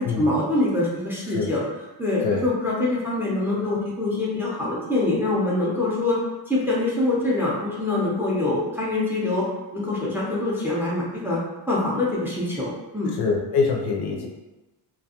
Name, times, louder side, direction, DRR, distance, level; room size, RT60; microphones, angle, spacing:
voice 1, 0.0-1.6 2.0-6.2 6.5-9.5 9.7-11.4 11.7-13.1, left 2 dB, 5° right, -5 dB, 0.5 m, -24 dB
voice 2, 13.2-14.3, left 5 dB, 55° left, -1 dB, 0.5 m, -24 dB
2.4 x 2.2 x 2.8 m, 1.1 s
cardioid pair, 125°, 46 cm